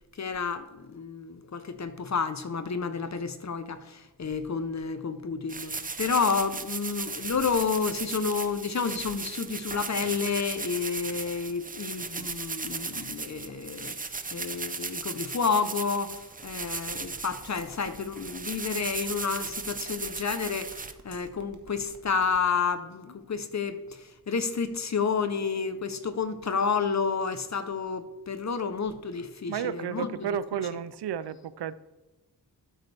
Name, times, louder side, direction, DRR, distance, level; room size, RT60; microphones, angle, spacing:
voice 1, 0.2-13.9 14.3-30.3, left 5 dB, 45° left, 0.8 m, -30 dB
sound 1, 5.5-20.9, right 4 dB, 20° right, 0.5 m, -37 dB
sound 2, 16.5-22.4, right 4 dB, 45° right, 1.3 m, -52 dB
voice 2, 29.5-31.7, right 8 dB, 80° right, 0.5 m, -32 dB
12.5 x 8.3 x 3.4 m
wide cardioid pair, 100°, 40 cm